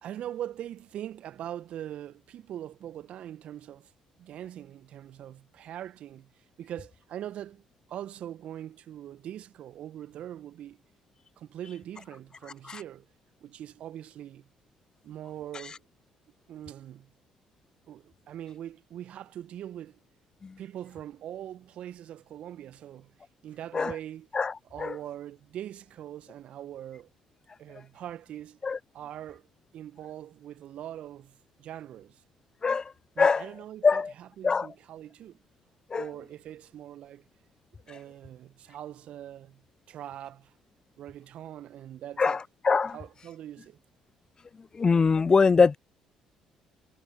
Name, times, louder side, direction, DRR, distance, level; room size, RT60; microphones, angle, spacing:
voice 1, 0.0-3.9 4.2-10.8 11.4-13.1 13.4-14.5 15.0-15.9 16.5-17.1 17.9-20.0 20.6-23.1 23.4-24.3 24.7-27.1 27.6-28.6 28.9-29.5 29.7-32.2 33.1-35.4 35.9-37.2 37.9-39.6 39.9-40.5 41.0-42.4 42.9-43.8, right 11 dB, 60° right, 1.3 m, -42 dB
voice 2, 44.7-45.8, left 5 dB, 35° left, 0.7 m, -22 dB
hypercardioid pair, 50°, 2 cm